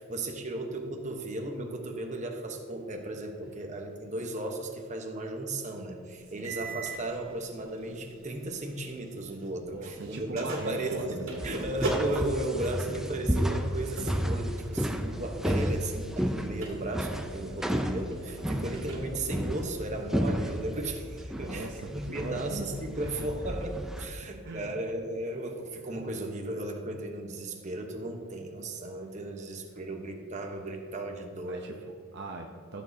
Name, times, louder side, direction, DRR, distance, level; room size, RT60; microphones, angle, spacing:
voice 1, 0.0-11.2 11.4-31.6, right 2 dB, 35° right, 3 dB, 1.0 m, -35 dB
voice 2, 6.2-6.8 9.6-11.5 17.4-17.7 18.4-18.7 21.3-22.7 23.0-23.3 24.2-24.8 31.4-32.8, right 2 dB, 55° right, 2 dB, 0.7 m, -41 dB
sound 1, 6.4-9.5 9.8-21.0, right 1 dB, 75° right, 2.1 m, -41 dB
sound 2, 11.4-24.1, equal, ahead, 0.5 m, -32 dB
15.0 x 7.3 x 2.7 m, 2.1 s
head